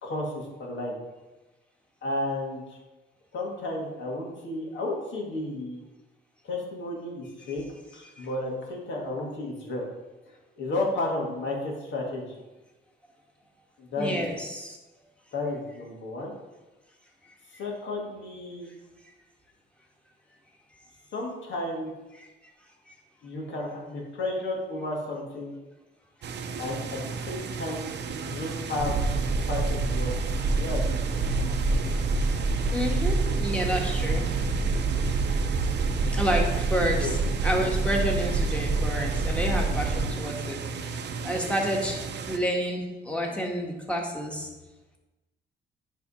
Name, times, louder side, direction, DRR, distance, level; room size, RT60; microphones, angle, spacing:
voice 1, 0.0-1.0 2.0-2.8 3.3-5.8 6.4-7.6 7.9-9.8 10.3-12.4 13.8-14.2 15.3-16.3 17.6-18.7 21.1-21.9 23.2-25.5 26.6-27.9 28.2-29.0 29.5-30.2 30.6-31.0 37.0-37.1, left 2 dB, 65° left, -1 dB, 2.1 m, -32 dB
voice 2, 14.0-14.8 32.7-34.2 36.1-42.0 42.3-44.5, equal, 5° left, -1 dB, 1.6 m, -29 dB
sound 1, 26.2-42.4, right 5 dB, 60° right, 0.7 m, -35 dB
sound 2, 28.8-40.1, right 3 dB, 35° right, 1.0 m, -27 dB
10.0 x 3.6 x 4.3 m, 1.1 s
cardioid pair, 90°, 20 cm